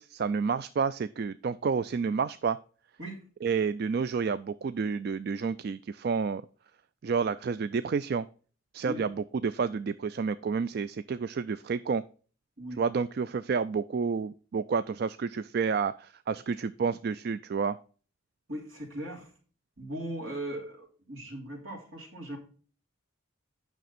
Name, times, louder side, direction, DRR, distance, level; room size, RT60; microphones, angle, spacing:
voice 1, 0.0-2.6 3.4-6.4 7.0-8.3 8.7-12.0 12.8-17.8, right 5 dB, 50° right, 14 dB, 0.3 m, -30 dB
voice 2, 18.5-19.3 19.8-22.4, right 1 dB, 70° right, -1 dB, 3.7 m, -38 dB
9.2 x 6.1 x 4.2 m, 0.40 s
head